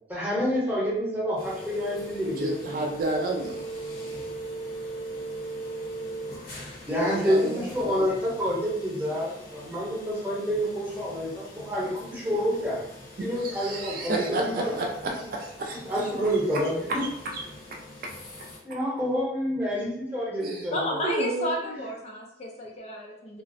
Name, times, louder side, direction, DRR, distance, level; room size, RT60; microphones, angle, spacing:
voice 1, 0.1-2.9 6.9-12.8 13.2-14.7 15.0-15.1 15.8-17.0 18.6-21.0 21.6-21.8, equal, 10° right, -7 dB, 0.8 m, -28 dB
sound 1, 1.4-18.6, right 1 dB, 60° left, 0.8 m, -40 dB
voice 2, 2.4-3.7 6.9-8.1 13.2-16.1 16.9-17.0 17.3-17.4 20.4-20.7 21.0-21.5, right 2 dB, 50° right, 1 dB, 0.3 m, -31 dB
voice 3, 20.7-23.4, left 1 dB, 40° left, 0 dB, 0.4 m, -31 dB
2.4 x 2.0 x 2.5 m, 0.76 s
head